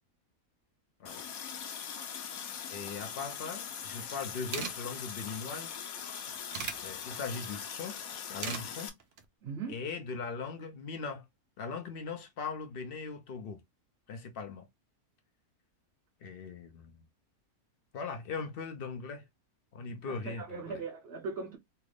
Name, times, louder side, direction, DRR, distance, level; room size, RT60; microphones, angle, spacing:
Water tap faucet, 1.1-8.9, left 7 dB, 75° left, 1.1 m, -41 dB
voice 1, 2.7-5.8 6.8-8.0 8.3-9.0 9.7-11.2 11.6-13.6 14.1-14.7 16.2-17.0 17.9-19.2 19.7-20.8, left 5 dB, 55° left, 0.6 m, -40 dB
sound 1, 4.0-4.1 4.3-4.7 6.0-6.8 8.1-8.6 9.0-9.2, right 6 dB, 70° right, 0.5 m, -37 dB
voice 2, 9.4-9.8 19.8-21.6, right 4 dB, 55° right, 0.9 m, -40 dB
2.9 x 2.4 x 3.2 m
omnidirectional pair, 1.5 m